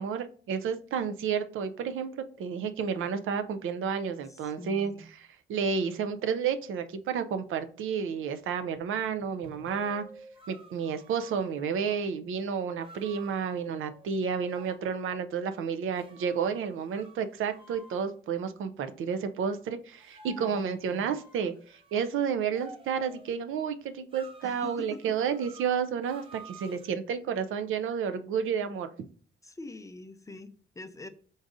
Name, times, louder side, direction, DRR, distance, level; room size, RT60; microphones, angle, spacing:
voice 1, 0.0-2.1 2.4-10.0 10.5-28.9, right 6 dB, 80° right, 9 dB, 0.5 m, -31 dB
voice 2, 4.3-5.0 20.4-21.1 24.4-25.2 29.4-31.1, left 3 dB, 15° left, 10 dB, 0.4 m, -44 dB
sound 1, 9.0-12.0 12.8-14.8 15.9-18.1 20.0-22.1 22.5-23.3 24.1-26.9, right 3 dB, 25° right, 0.7 m, -52 dB
3.9 x 2.6 x 4.7 m, 0.43 s
cardioid pair, 125°, 21 cm